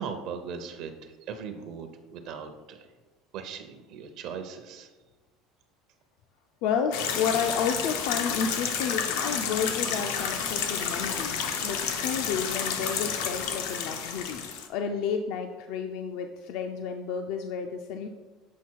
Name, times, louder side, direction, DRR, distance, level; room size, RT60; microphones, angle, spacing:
voice 1, 0.0-2.9 3.3-4.9, right 6 dB, 55° right, 6 dB, 0.6 m, -39 dB
voice 2, 6.6-18.1, left 6 dB, 60° left, 5 dB, 0.4 m, -31 dB
sound 1, 6.9-14.7, left 7 dB, 90° left, 0.8 m, -30 dB
7.3 x 4.0 x 4.6 m, 1.2 s
cardioid pair, 155°, 0 cm